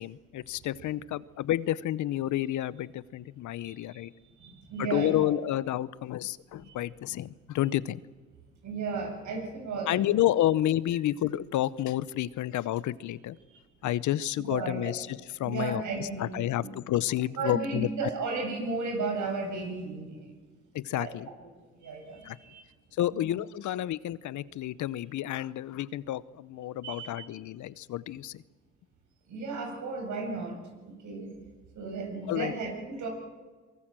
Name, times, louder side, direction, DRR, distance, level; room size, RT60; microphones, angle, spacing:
voice 1, 0.0-4.1 4.8-8.0 9.9-13.4 13.8-17.9 20.7-21.3 22.2-22.4 23.0-28.4 32.3-32.5, left 13 dB, 75° left, 19 dB, 0.8 m, -30 dB
voice 2, 3.6-4.1 4.4-5.3 6.6-6.8 8.6-10.1 13.5-13.6 14.5-14.9 15.5-16.7 17.4-20.3 20.9-21.1 21.7-22.6 23.1-23.3 26.8-27.3 29.3-30.6 31.0-31.3 31.8-33.1, right 4 dB, 75° right, 2 dB, 7.7 m, -34 dB
23.5 x 23.0 x 7.6 m, 1.4 s
cardioid pair, 90°, 30 cm